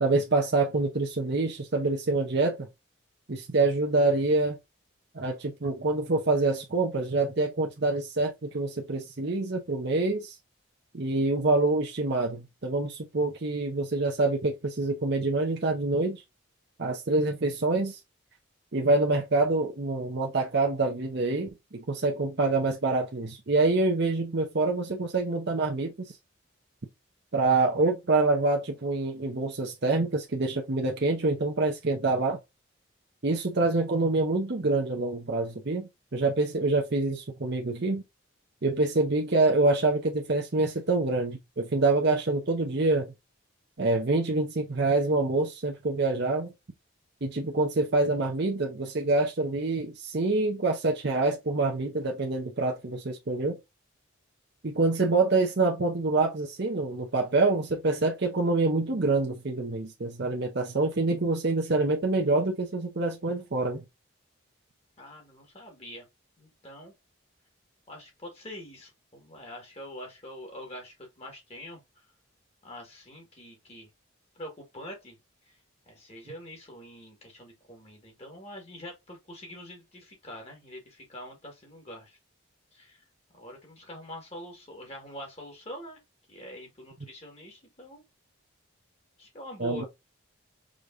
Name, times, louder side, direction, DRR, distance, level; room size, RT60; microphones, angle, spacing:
voice 1, 0.0-2.7 3.3-4.6 5.1-10.4 10.9-16.2 16.8-18.0 18.7-26.1 27.3-32.4 33.2-38.0 38.6-43.1 43.8-46.5 47.2-53.6 54.6-63.8 89.6-89.8, right 3 dB, 50° right, 0.7 m, -26 dB
voice 2, 65.0-66.0 66.4-66.9 67.9-72.1 72.6-73.9 74.3-75.2 75.5-75.6 75.9-82.2 82.7-83.0 83.3-86.0 86.3-88.0 89.2-89.9, equal, 30° left, 1.4 m, -44 dB
5.0 x 3.0 x 2.5 m
head